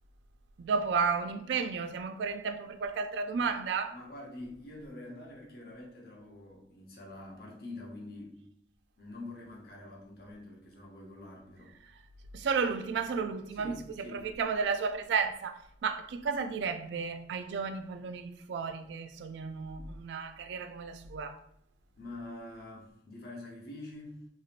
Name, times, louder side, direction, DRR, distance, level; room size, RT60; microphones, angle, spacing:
voice 1, 0.6-4.0 12.3-21.4, right 5 dB, 75° right, 0.3 m, -33 dB
voice 2, 3.9-8.4 9.0-11.8 13.5-14.3 21.9-24.3, left 2 dB, 55° left, 0.8 m, -46 dB
3.1 x 2.7 x 2.4 m
head